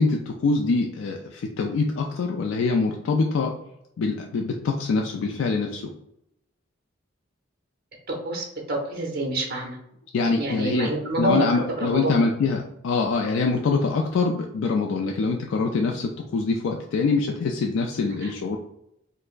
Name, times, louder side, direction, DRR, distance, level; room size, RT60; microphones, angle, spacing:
voice 1, 0.0-3.5 4.0-5.9 10.1-18.6, left 4 dB, 75° left, 1 dB, 0.3 m, -24 dB
voice 2, 8.2-9.8 10.4-11.4 11.8-12.2 18.2-18.3, right 1 dB, 50° right, -1 dB, 0.8 m, -27 dB
4.3 x 2.0 x 2.5 m, 0.80 s
head